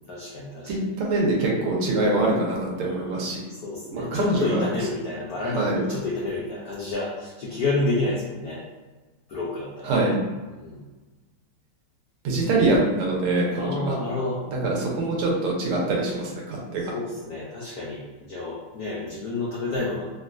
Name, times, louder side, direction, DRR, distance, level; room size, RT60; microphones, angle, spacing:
voice 1, 0.1-0.7 2.7-8.6 9.3-10.1 10.5-10.8 13.6-14.4 16.9-20.1, left 2 dB, 85° left, -5 dB, 0.8 m, -30 dB
voice 2, 0.7-3.4 3.9-4.6 5.5-5.8 9.8-10.2 12.2-14.0 14.5-16.9, right 2 dB, 80° right, -2 dB, 1.7 m, -24 dB
3.9 x 2.2 x 2.5 m, 1.2 s
omnidirectional pair, 2.4 m